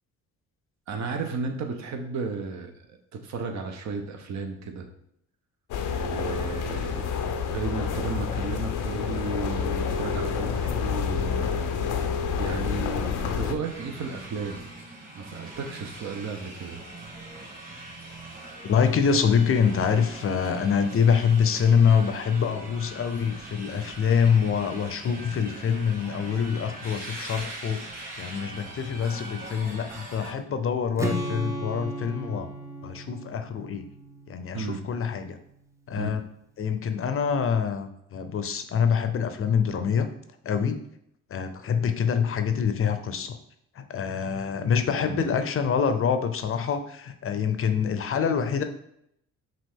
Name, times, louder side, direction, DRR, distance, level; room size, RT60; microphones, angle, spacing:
voice 1, 0.9-4.9 6.0-7.2 7.5-11.5 12.4-14.6 15.2-16.8 34.5-34.9 35.9-36.2 45.0-45.2, right 4 dB, 65° right, 5 dB, 0.8 m, -34 dB
sound 1, 5.7-13.5, left 6 dB, 85° left, 0.6 m, -28 dB
sound 2, 13.6-30.3, right 2 dB, 30° right, 1.8 m, -42 dB
voice 2, 18.6-27.9 28.2-32.5 32.8-33.9 34.3-35.4 35.9-36.2 36.6-40.1 40.4-40.8 41.3-43.4 43.7-48.6, left 6 dB, 45° left, 9 dB, 0.5 m, -25 dB
Strum, 31.0-35.1, right 1 dB, 10° right, 0.5 m, -35 dB
5.9 x 2.4 x 3.6 m, 0.75 s
cardioid pair, 90°, 30 cm